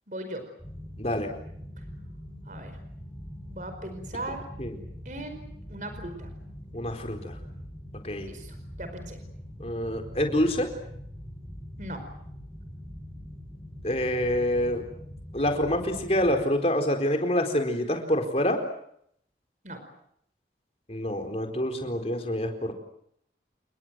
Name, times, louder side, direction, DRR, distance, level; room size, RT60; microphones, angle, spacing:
voice 1, 0.1-0.4 2.4-2.8 3.5-4.4 5.0-6.3 8.1-9.2 11.8-12.0 19.6-19.8, right 1 dB, 45° right, 8 dB, 5.0 m, -38 dB
sound 1, 0.6-16.5, equal, 15° left, 7.6 m, -43 dB
voice 2, 1.0-1.3 4.6-4.7 6.7-7.3 8.0-8.3 9.6-10.7 13.8-14.8 15.3-18.6 20.9-22.7, left 1 dB, 35° left, 5 dB, 4.3 m, -26 dB
30.0 x 20.5 x 7.7 m, 0.71 s
head